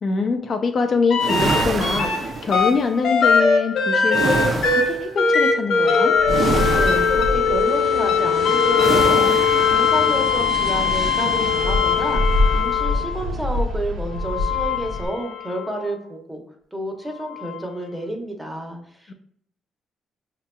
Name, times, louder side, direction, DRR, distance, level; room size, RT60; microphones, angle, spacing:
voice 1, 0.0-6.2 19.1-19.2, left 4 dB, 50° left, 5 dB, 0.4 m, -24 dB
sound 1, 1.1-2.2 2.5-13.3 14.1-15.7 17.4-17.5, left 5 dB, 70° left, 1.1 m, -20 dB
sound 2, 1.2-2.8 4.1-5.0 6.3-7.4 8.8-9.7, right 4 dB, 50° right, 0.5 m, -25 dB
sound 3, 6.1-15.1, equal, 90° right, 0.9 m, -26 dB
voice 2, 6.7-16.4 16.7-19.1, right 1 dB, 5° right, 2 dB, 0.9 m, -30 dB
5.7 x 2.8 x 2.2 m, 0.65 s
cardioid pair, 90°, 0 cm